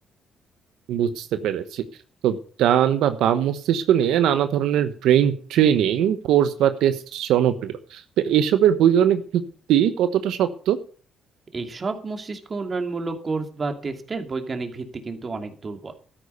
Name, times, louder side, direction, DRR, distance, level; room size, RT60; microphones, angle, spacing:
voice 1, 0.9-1.8 2.2-9.4 9.7-10.8, right 10 dB, 85° right, 10 dB, 1.1 m, -20 dB
voice 2, 11.5-15.9, right 3 dB, 35° right, 6 dB, 2.7 m, -30 dB
13.0 x 10.0 x 6.8 m, 0.41 s
cardioid pair, 90°, 0 cm